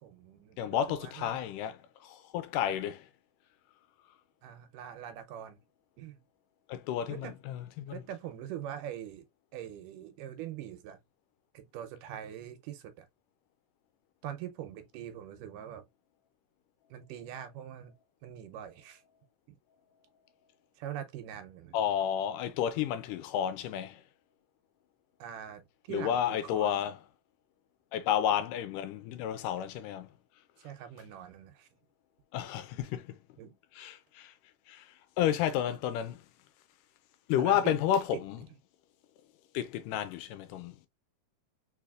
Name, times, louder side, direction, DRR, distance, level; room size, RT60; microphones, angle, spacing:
voice 1, 0.0-1.4 4.4-5.6 6.0-6.2 7.1-7.3 7.9-9.3 9.5-11.0 11.5-13.1 14.2-15.9 16.9-17.9 18.2-19.0 19.5-19.6 20.8-21.8 25.2-26.8 30.6-31.7 33.4-33.6 37.4-37.6 38.1-38.2, right 10 dB, 75° right, 2.3 m, -43 dB
voice 2, 0.6-3.1 6.7-8.0 21.7-24.0 25.9-27.0 27.9-30.1 32.3-33.2 33.8-34.3 34.7-36.2 37.3-38.4 39.5-40.8, left 10 dB, 80° left, 2.0 m, -31 dB
4.7 x 4.1 x 2.4 m
omnidirectional pair, 3.9 m